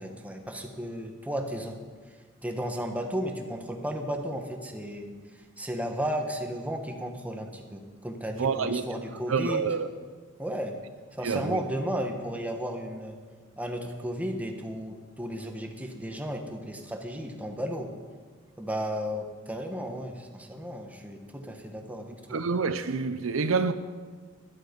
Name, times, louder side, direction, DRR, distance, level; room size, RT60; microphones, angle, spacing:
voice 1, 0.0-1.8 2.4-5.1 5.6-9.7 10.4-10.7 11.1-13.2 13.6-17.9 18.6-22.4, equal, 5° right, 1.3 m, -34 dB
voice 2, 8.4-8.8 9.3-9.9 11.2-11.6 22.3-23.7, right 5 dB, 80° right, 0.6 m, -27 dB
12.5 x 12.0 x 5.2 m
head